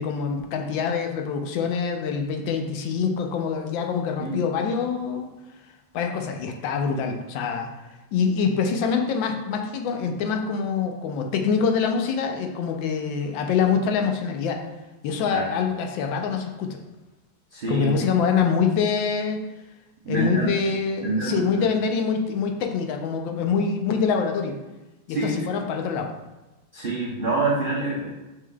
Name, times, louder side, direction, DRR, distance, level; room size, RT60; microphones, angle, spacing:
voice 1, 0.0-5.3 5.9-14.7 15.0-16.8 17.7-19.4 20.1-24.6 25.1-26.1, left 6 dB, 80° left, 4 dB, 1.4 m, -25 dB
voice 2, 17.5-17.9 20.0-20.5 21.0-21.7 25.1-25.5 26.7-28.1, right 3 dB, 80° right, -6 dB, 0.4 m, -26 dB
6.0 x 3.7 x 2.2 m, 1.0 s
omnidirectional pair, 2.1 m